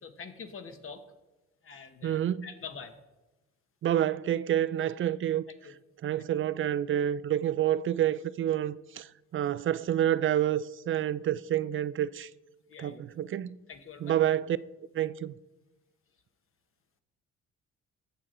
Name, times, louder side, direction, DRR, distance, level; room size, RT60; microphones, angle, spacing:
voice 1, 0.0-1.0 1.6-2.9 5.6-5.7 12.7-13.0 13.7-14.1, left 6 dB, 45° left, 1.2 m, -45 dB
voice 2, 2.0-2.5 3.8-5.5 6.0-9.1 9.3-12.3 12.8-13.6 14.0-14.6 14.9-15.3, right 11 dB, 45° right, 0.4 m, -28 dB
14.5 x 7.4 x 3.8 m
cardioid pair, 90°, 30 cm